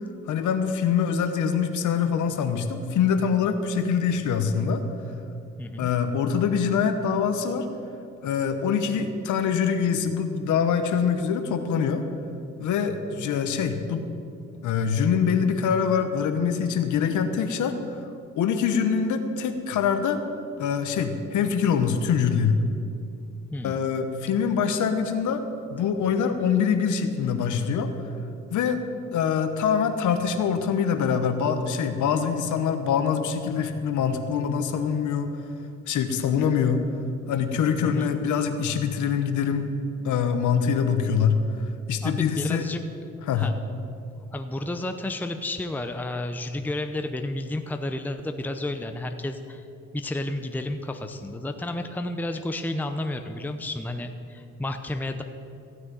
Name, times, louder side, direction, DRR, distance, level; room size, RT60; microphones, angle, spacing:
voice 1, 0.3-4.8 5.8-7.7 8.2-12.0 12.6-14.1 14.6-18.0 18.4-20.2 20.6-22.6 23.6-25.4 25.7-27.9 28.5-28.8 29.1-35.4 35.9-36.8 37.3-39.7 40.0-41.4 41.9-42.7 43.3-43.5, left 7 dB, 75° left, 7 dB, 1.1 m, -24 dB
voice 2, 5.6-5.9 23.5-23.8 37.9-38.1 42.0-42.8 43.4-43.5 44.3-49.6 49.9-55.2, left 1 dB, 5° left, 7 dB, 0.7 m, -31 dB
15.5 x 6.4 x 9.2 m, 2.6 s
cardioid pair, 90°, 30 cm